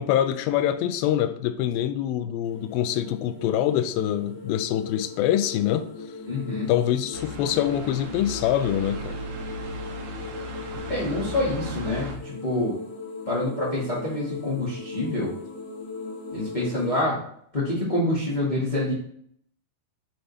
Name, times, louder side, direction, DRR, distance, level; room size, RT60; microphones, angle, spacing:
voice 1, 0.0-5.9 6.7-9.2, left 11 dB, 80° left, 10 dB, 2.3 m, -25 dB
sound 1, 2.4-17.0, left 3 dB, 60° left, 2.5 m, -39 dB
voice 2, 6.3-6.7 10.9-12.7 13.3-15.3 16.3-17.2 17.5-18.9, left 1 dB, 40° left, -7 dB, 0.6 m, -26 dB
sound 2, 7.1-12.2, right 2 dB, 75° right, 2.9 m, -36 dB
9.0 x 3.5 x 4.1 m, 0.64 s
omnidirectional pair, 4.3 m